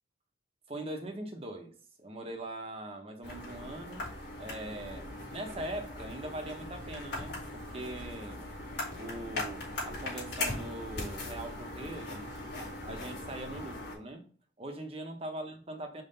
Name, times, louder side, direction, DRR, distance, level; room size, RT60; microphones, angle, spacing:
voice 1, 0.7-4.1 4.4-8.4 8.9-12.3 12.6-14.2 14.6-16.0, right 1 dB, 30° right, 4 dB, 1.0 m, -41 dB
sound 1, 3.2-13.9, left 2 dB, 70° left, 3.0 m, -40 dB
5.5 x 3.2 x 5.4 m, 0.42 s
head